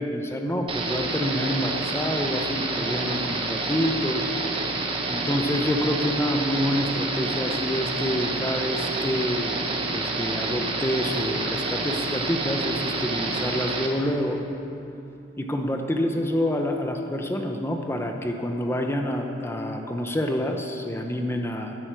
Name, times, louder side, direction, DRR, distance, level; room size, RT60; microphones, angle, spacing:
voice 1, 0.0-14.4 15.4-21.8, equal, 15° left, 3 dB, 0.9 m, -27 dB
sound 1, 0.7-13.9, right 3 dB, 30° right, 1.2 m, -28 dB
11.0 x 9.6 x 8.3 m, 2.8 s
head